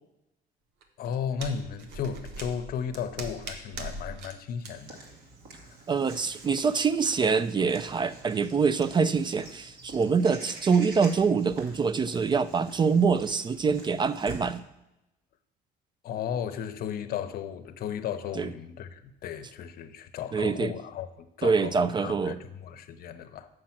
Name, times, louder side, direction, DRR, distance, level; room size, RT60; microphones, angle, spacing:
sound 1, 0.8-4.3 4.6-4.7, right 2 dB, 90° right, 1.1 m, -40 dB
voice 1, 1.0-5.0 5.6-5.8 16.0-23.5, left 8 dB, 60° left, 10 dB, 0.7 m, -35 dB
Walk footsteps / Bird vocalization bird call bird song, 4.6-14.6, right 3 dB, 65° right, 2.2 m, -47 dB
voice 2, 5.9-14.6 18.4-18.5 20.3-20.7 21.4-22.4, right 5 dB, 25° right, 14 dB, 0.3 m, -25 dB
7.5 x 6.4 x 5.9 m, 0.93 s
cardioid pair, 110°, 17 cm